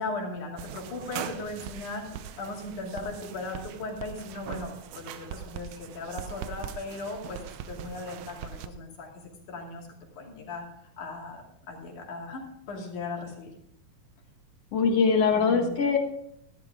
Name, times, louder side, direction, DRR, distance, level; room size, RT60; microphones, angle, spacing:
voice 1, 0.0-2.1 2.4-7.4 7.7-9.1 9.5-9.9 10.2-13.5 15.3-15.7, left 3 dB, 80° left, -1 dB, 4.1 m, -37 dB
sound 1, 0.6-8.7, right 9 dB, 75° right, 2.1 m, -41 dB
voice 2, 14.7-16.0, left 5 dB, 60° left, 4 dB, 2.2 m, -22 dB
14.0 x 12.5 x 3.7 m, 0.74 s
omnidirectional pair, 3.5 m